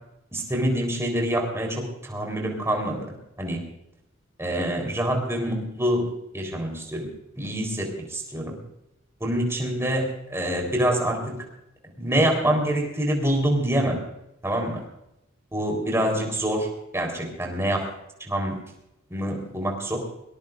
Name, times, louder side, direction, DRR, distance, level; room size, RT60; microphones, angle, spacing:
voice 1, 0.3-3.1 3.4-3.6 4.4-7.1 7.4-8.6 9.2-11.4 12.0-14.0 14.4-14.8 15.5-16.7 16.9-17.8 18.2-18.6 19.1-20.0, right 1 dB, 10° right, 1 dB, 3.9 m, -26 dB
22.0 x 19.5 x 2.6 m, 0.86 s
head